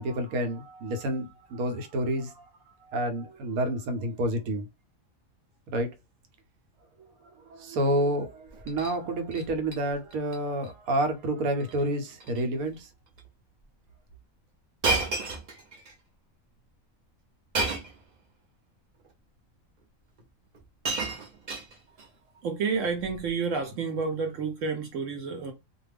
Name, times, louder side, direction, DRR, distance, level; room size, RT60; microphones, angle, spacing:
voice 1, 0.0-4.7 5.7-5.9 7.5-12.9, right 1 dB, 90° right, 1.1 m, -29 dB
Shatter, 8.5-9.0 9.3-9.8 10.1-10.4 10.6-10.7 11.6-11.8 12.2-12.4 13.2-13.3 14.8-15.9 17.5-18.0 19.0-19.1 20.2-20.3 20.5-22.1 23.0-23.3, right 3 dB, 50° right, 0.5 m, -31 dB
voice 2, 22.4-25.5, right 5 dB, 70° right, 0.9 m, -30 dB
2.4 x 2.2 x 3.2 m
omnidirectional pair, 1.5 m